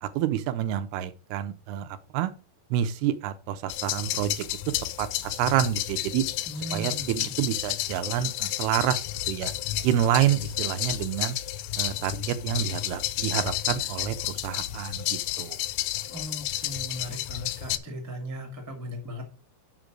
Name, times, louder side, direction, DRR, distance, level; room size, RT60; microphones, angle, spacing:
voice 1, 0.0-2.3 2.7-4.4 5.0-6.2 6.7-9.5 9.8-11.4 11.8-15.6, right 11 dB, 85° right, 2.7 m, -28 dB
sound 1, 3.7-17.8, left 14 dB, 80° left, 2.3 m, -31 dB
voice 2, 6.5-7.3 16.1-19.4, equal, 15° right, 0.5 m, -38 dB
6.0 x 5.1 x 6.1 m
omnidirectional pair, 4.4 m